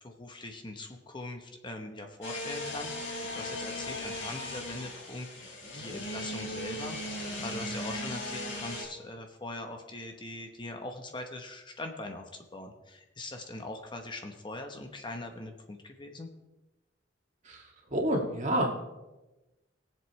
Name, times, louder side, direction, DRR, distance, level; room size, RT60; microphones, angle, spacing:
voice 1, 0.0-5.3 5.7-12.2 12.5-16.3, left 2 dB, 25° left, 4 dB, 0.9 m, -41 dB
sound 1, 2.2-8.9, left 1 dB, 75° left, 4.1 m, -37 dB
voice 2, 17.4-18.7, right 1 dB, 40° right, 0 dB, 2.2 m, -30 dB
20.5 x 7.6 x 3.2 m, 1.1 s
head